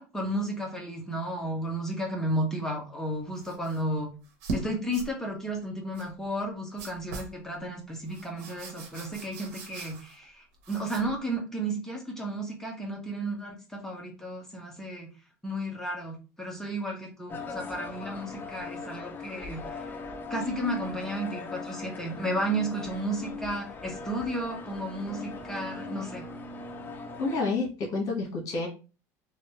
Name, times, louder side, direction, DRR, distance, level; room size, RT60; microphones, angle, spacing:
voice 1, 0.0-4.1 4.5-15.1 15.4-20.0 20.3-26.2, right 1 dB, 5° left, 0 dB, 1.2 m, -33 dB
sound 1, 3.4-3.8 4.2-4.6 4.9-5.1 5.9-6.1 6.8-7.4 8.1-10.2 10.6-11.2, right 2 dB, 75° right, 1.0 m, -39 dB
sound 2, 17.3-27.4, left 4 dB, 25° left, 0.6 m, -40 dB
voice 2, 27.2-28.7, left 3 dB, 50° left, -1 dB, 1.6 m, -29 dB
3.1 x 2.6 x 3.1 m, 0.33 s
supercardioid pair, 105°, 8 cm